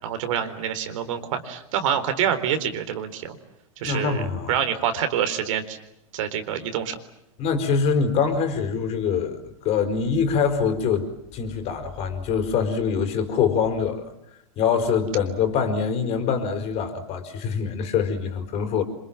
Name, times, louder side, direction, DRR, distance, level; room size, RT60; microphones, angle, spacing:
voice 1, 0.0-3.4 3.8-4.2 4.5-5.8 6.1-7.0, right 9 dB, 65° right, 9 dB, 4.2 m, -26 dB
voice 2, 3.9-4.5 7.4-14.0 14.6-18.8, left 6 dB, 35° left, 8 dB, 4.9 m, -24 dB
27.5 x 26.5 x 7.5 m, 0.76 s
supercardioid pair, 140°, 18 cm